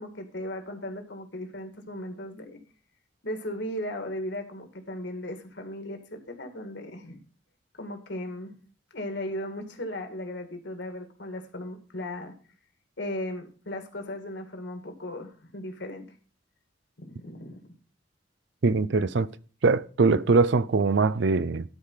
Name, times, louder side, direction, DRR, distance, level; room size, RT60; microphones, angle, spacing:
voice 1, 0.0-2.6 3.2-7.2 7.8-8.6 8.9-12.3 13.0-16.1 17.0-17.8, left 1 dB, 65° left, 2.0 m, -36 dB
voice 2, 18.6-19.3 19.6-21.6, right 4 dB, 65° right, 0.5 m, -22 dB
12.5 x 4.9 x 5.5 m
head